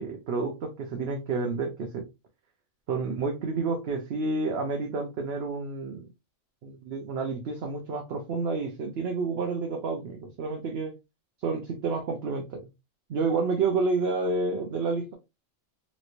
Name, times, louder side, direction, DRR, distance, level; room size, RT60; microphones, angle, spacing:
voice 1, 0.0-2.0 2.9-6.1 6.6-10.9 11.4-12.6 13.1-15.1, right 4 dB, 60° right, 0.8 m, -29 dB
3.1 x 3.0 x 2.5 m
omnidirectional pair, 1.4 m